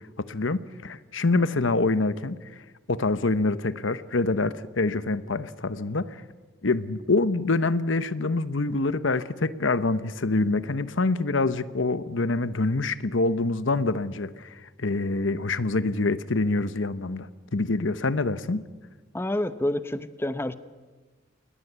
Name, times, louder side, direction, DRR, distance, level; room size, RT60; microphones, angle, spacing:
voice 1, 0.2-2.4 2.9-6.2 6.6-14.5 14.8-18.6, left 3 dB, 75° left, 15 dB, 1.0 m, -26 dB
voice 2, 19.1-20.5, left 1 dB, 10° left, 13 dB, 0.8 m, -28 dB
28.0 x 20.5 x 8.2 m, 1.3 s
head